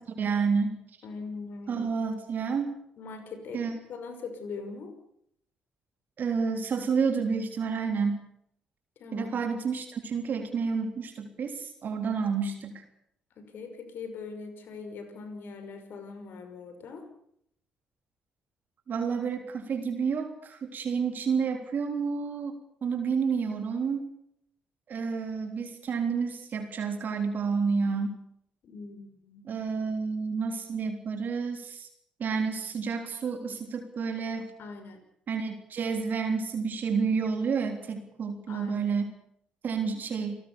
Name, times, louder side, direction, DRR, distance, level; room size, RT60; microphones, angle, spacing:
voice 1, 0.2-0.8 1.7-2.8 3.5-3.7 6.2-8.2 9.1-12.8 18.9-22.6 22.8-24.0 24.9-28.2 29.4-31.9 32.2-34.5 35.3-39.1 39.6-40.4, right 5 dB, 50° right, 6 dB, 3.5 m, -30 dB
voice 2, 1.0-1.9 3.0-4.9 9.0-9.3 13.4-17.1 28.6-29.5 34.6-35.0 38.5-38.9, left 4 dB, 60° left, 8 dB, 5.8 m, -41 dB
28.0 x 18.5 x 7.0 m, 0.72 s
hypercardioid pair, 45°, 4 cm